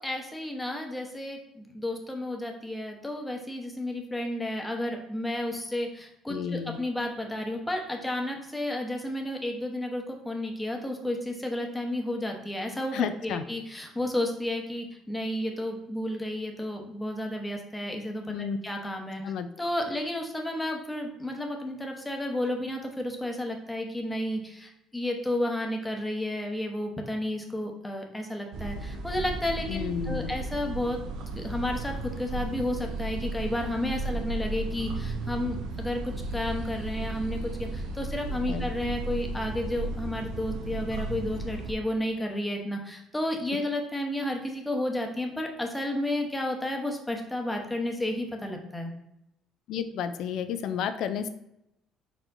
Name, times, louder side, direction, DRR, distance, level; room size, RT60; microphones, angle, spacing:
voice 1, 0.0-31.0 31.4-48.9, left 1 dB, 10° left, 2 dB, 0.8 m, -32 dB
voice 2, 6.3-6.8 12.9-13.4 18.3-18.6 19.2-19.5 29.7-30.3 38.5-38.6 49.7-51.3, left 8 dB, 70° left, 10 dB, 0.4 m, -31 dB
sound 1, 28.5-41.7, right 2 dB, 85° right, 0.7 m, -34 dB
4.4 x 4.4 x 2.6 m, 0.82 s
cardioid pair, 110°, 0 cm